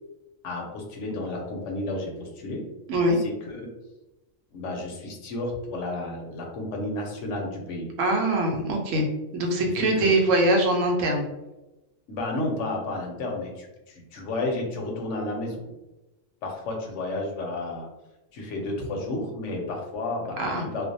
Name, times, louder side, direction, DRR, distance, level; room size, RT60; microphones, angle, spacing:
voice 1, 0.4-2.6 3.2-3.6 4.5-7.9 9.8-10.1 12.1-15.6 16.4-17.9 18.3-20.9, left 2 dB, 75° left, 1 dB, 0.9 m, -32 dB
voice 2, 8.0-11.3 20.4-20.6, right 1 dB, 80° right, 2 dB, 1.0 m, -23 dB
2.5 x 2.1 x 2.5 m, 0.99 s
omnidirectional pair, 1.3 m